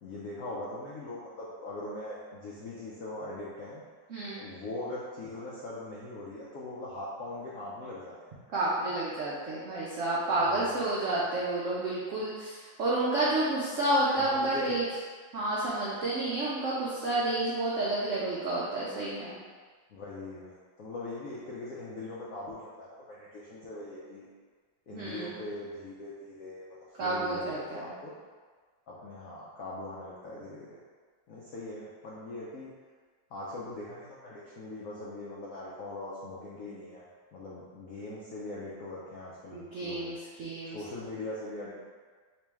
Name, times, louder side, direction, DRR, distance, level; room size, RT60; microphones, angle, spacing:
voice 1, 0.0-3.8 4.4-8.3 10.4-10.8 14.2-15.0 19.9-24.3 24.9-26.7 27.0-28.2 28.9-30.8 31.3-32.7 33.3-40.1 40.7-41.7, left 2 dB, 75° left, -6 dB, 0.7 m, -41 dB
voice 2, 4.1-4.4 8.5-14.8 15.3-19.4 24.9-25.4 27.0-27.9 39.5-40.8, right 2 dB, 75° right, -7 dB, 0.7 m, -30 dB
3.3 x 3.1 x 3.4 m, 1.5 s
omnidirectional pair, 2.1 m